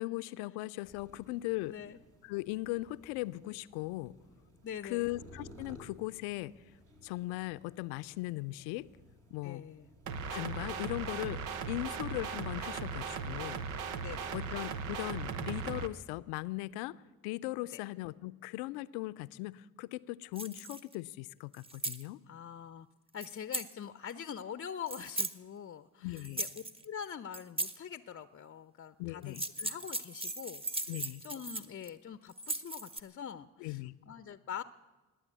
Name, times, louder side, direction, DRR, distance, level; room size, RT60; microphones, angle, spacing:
voice 1, 0.0-1.8 2.2-4.1 4.8-6.5 7.0-8.9 9.3-9.6 10.3-11.4 11.7-13.6 14.3-17.0 17.2-22.2 26.0-26.4 29.0-29.4 30.9-31.2 33.6-33.9, left 19 dB, 75° left, 16 dB, 0.6 m, -38 dB
sound 1, 0.8-10.5, equal, 50° right, 2.9 m, -57 dB
voice 2, 1.7-2.0 4.6-5.1 9.4-9.9 14.0-14.4 22.3-22.9 23.1-26.5 26.8-30.9 31.2-34.6, left 8 dB, 35° left, 14 dB, 0.6 m, -44 dB
sound 2, 10.1-15.9, right 5 dB, 80° right, 0.8 m, -38 dB
sound 3, 20.4-20.9 21.5-22.0 23.2-23.7 24.9-25.3 26.2-26.8 27.3-27.8 29.2-31.9 32.3-33.0, right 2 dB, 15° right, 1.1 m, -38 dB
20.0 x 8.3 x 8.2 m, 1.3 s
hypercardioid pair, 45°, 40 cm